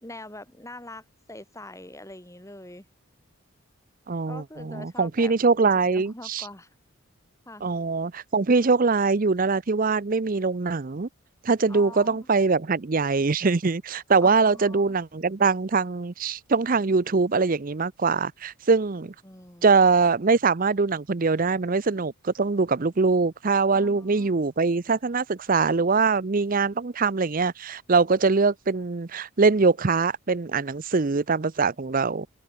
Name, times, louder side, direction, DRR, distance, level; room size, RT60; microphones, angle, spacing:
voice 1, 0.0-2.9 4.3-6.7 7.5-7.6 11.7-12.3 14.2-15.0 19.2-19.7 23.7-24.3, left 2 dB, 15° left, 4.1 m, -43 dB
voice 2, 4.1-6.5 7.6-11.1 11.4-19.1 19.6-32.3, right 4 dB, 40° right, 0.6 m, -23 dB
open air
head